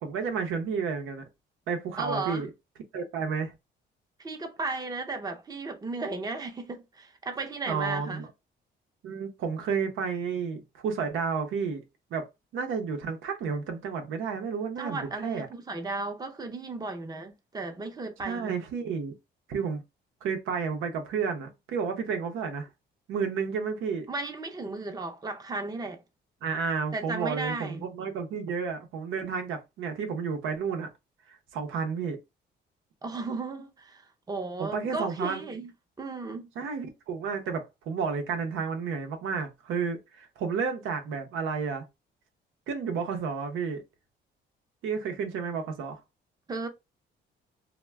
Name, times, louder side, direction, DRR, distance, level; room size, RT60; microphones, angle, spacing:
voice 1, 0.0-1.2 1.7-2.5 2.9-3.5 7.7-8.3 9.0-11.8 12.1-12.3 12.5-15.5 18.2-19.1 19.5-19.8 20.2-22.7 23.1-24.1 26.4-30.9 31.3-32.2 34.6-35.4 36.6-41.8 42.7-43.8 44.8-46.0, right 5 dB, 85° right, 0.7 m, -31 dB
voice 2, 2.0-2.4 4.2-8.2 14.8-18.6 24.1-26.0 26.9-27.8 33.0-35.7 36.0-36.5 46.5-46.7, right 3 dB, 20° right, 0.6 m, -35 dB
2.3 x 2.1 x 3.2 m
cardioid pair, 90°, 20 cm